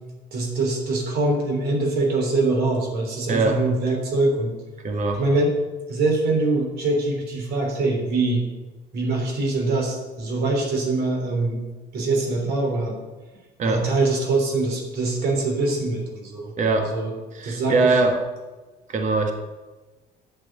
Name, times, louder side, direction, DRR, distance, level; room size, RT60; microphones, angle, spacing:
voice 1, 0.3-4.6 5.2-5.5 5.9-8.5 8.9-11.6 11.9-13.0 13.6-17.1 17.4-17.9, right 2 dB, 70° right, 1 dB, 3.3 m, -23 dB
voice 2, 3.3-3.6 4.8-5.2 13.6-13.9 16.6-16.9 17.3-18.2 18.9-19.3, right 3 dB, 45° right, 4 dB, 1.6 m, -21 dB
8.5 x 8.1 x 7.8 m, 1.2 s
cardioid pair, 110°, 17 cm